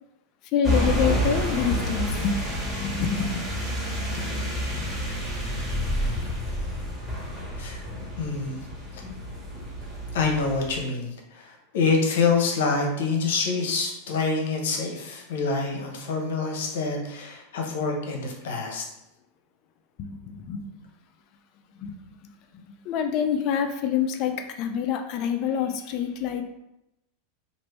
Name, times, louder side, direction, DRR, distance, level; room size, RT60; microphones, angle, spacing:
voice 1, 0.5-3.4 20.0-20.8 21.8-21.9 22.5-26.4, left 7 dB, 50° left, 6 dB, 0.4 m, -27 dB
sound 1, 0.6-10.8, equal, 10° right, 1.4 m, -29 dB
voice 2, 8.2-8.6 10.1-18.8, left 4 dB, 80° left, 1 dB, 0.8 m, -26 dB
3.0 x 2.5 x 3.2 m, 0.87 s
supercardioid pair, 115°, 0 cm